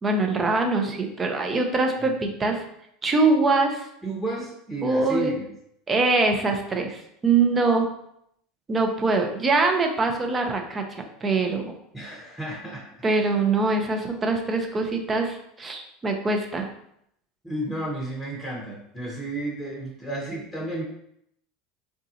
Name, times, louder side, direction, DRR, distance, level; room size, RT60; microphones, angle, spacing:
voice 1, 0.0-2.6 3.0-3.9 4.8-5.3 5.9-7.9 8.7-10.8 11.2-11.7 13.0-16.7, right 3 dB, 25° right, 3 dB, 0.6 m, -23 dB
voice 2, 4.0-5.5 11.9-12.9 17.4-20.8, right 1 dB, 5° left, -3 dB, 0.9 m, -32 dB
3.9 x 2.4 x 2.8 m, 0.75 s
hypercardioid pair, 80°, 0 cm